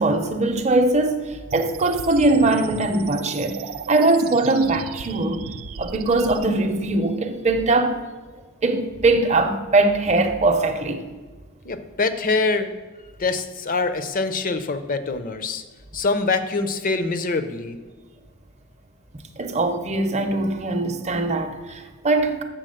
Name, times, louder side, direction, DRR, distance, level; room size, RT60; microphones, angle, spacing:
voice 1, 0.0-3.6 3.9-5.5 5.8-8.0 8.6-11.0 19.4-22.4, right 2 dB, 35° right, 0.7 m, -21 dB
sound 1, 1.5-6.5, right 6 dB, 80° right, 0.4 m, -36 dB
voice 2, 11.6-12.7 13.2-15.6 15.9-17.8, left 3 dB, 40° left, 0.6 m, -24 dB
7.7 x 4.0 x 6.5 m
head